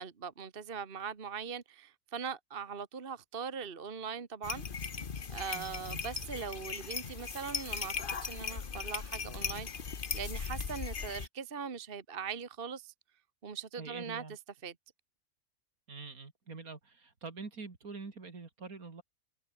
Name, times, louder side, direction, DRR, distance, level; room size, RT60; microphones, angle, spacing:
voice 1, 0.0-4.6 5.3-7.9 8.2-12.9 13.4-14.7, right 6 dB, 40° right, 1.5 m, -41 dB
sound 1, 4.4-11.3, left 6 dB, 40° left, 1.2 m, -38 dB
voice 2, 5.5-6.0 13.8-14.4 15.9-19.0, right 4 dB, 65° right, 3.2 m, -45 dB
omnidirectional pair, 1.6 m